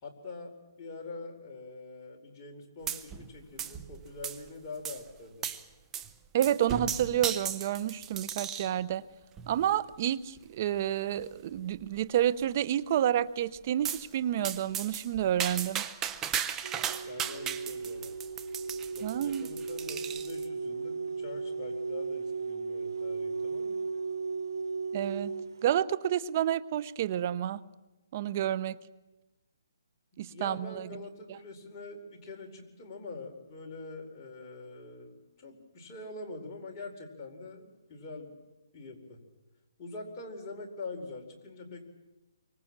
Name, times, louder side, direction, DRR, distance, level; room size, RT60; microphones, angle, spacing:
voice 1, 0.0-5.5 17.0-18.1 18.9-23.8 30.1-38.3 38.7-39.2 39.8-41.8, left 3 dB, 25° left, 0 dB, 4.6 m, -44 dB
sound 1, 2.9-3.3 3.6-4.5 4.8-5.0 5.4-5.6 5.9-6.1 6.4-8.8 9.4-9.7 10.4-10.5 10.8-10.9 11.2-11.3 11.7-12.2 13.8-14.1 14.4-20.5, right 8 dB, 15° right, 1.0 m, -36 dB
voice 2, 6.3-9.0 9.5-15.8 19.0-19.5 24.9-25.3 25.6-27.6 28.1-28.8 30.2-30.9 31.3-31.4, right 11 dB, 40° right, 17 dB, 0.9 m, -29 dB
sound 2, 16.6-25.7, right 4 dB, 75° right, 1.1 m, -36 dB
26.5 x 24.5 x 7.5 m, 1.1 s
hypercardioid pair, 155°, 2 cm